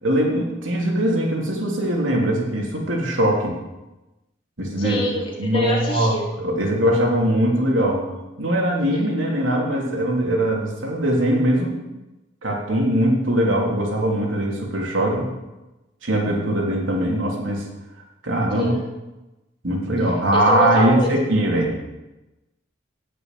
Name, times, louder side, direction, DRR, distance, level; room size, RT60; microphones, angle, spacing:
voice 1, 0.0-3.5 4.6-5.0 5.4-8.1 8.4-11.8 12.4-15.3 16.0-17.6 18.2-18.8 19.6-21.7, right 1 dB, 85° right, -1 dB, 3.5 m, -21 dB
voice 2, 4.8-6.2 18.5-18.8 20.3-21.1, left 1 dB, 25° left, -3 dB, 3.3 m, -25 dB
17.5 x 6.9 x 7.6 m, 1.0 s
head